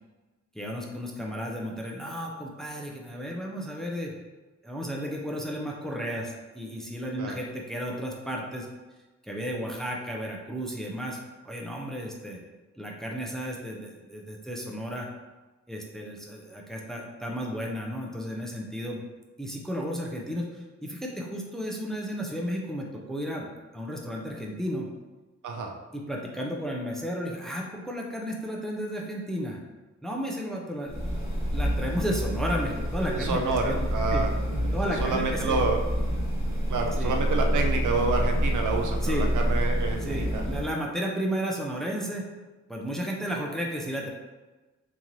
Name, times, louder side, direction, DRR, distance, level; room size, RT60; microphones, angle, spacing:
voice 1, 0.5-4.1 4.6-8.7 9.2-12.4 12.8-15.1 15.7-19.0 19.4-24.9 25.9-29.6 30.0-31.2 31.5-34.2 34.7-35.6 36.8-37.1 39.0-39.3 40.0-42.3 42.7-44.1, equal, ahead, -1 dB, 0.4 m, -33 dB
voice 2, 25.4-25.7 33.1-34.3 34.8-35.8 36.7-40.4, right 3 dB, 80° right, 3 dB, 0.5 m, -28 dB
sound 1, 30.9-40.7, equal, 20° right, 1.4 m, -28 dB
3.7 x 2.8 x 3.0 m, 1.2 s
wide cardioid pair, 145°, 30 cm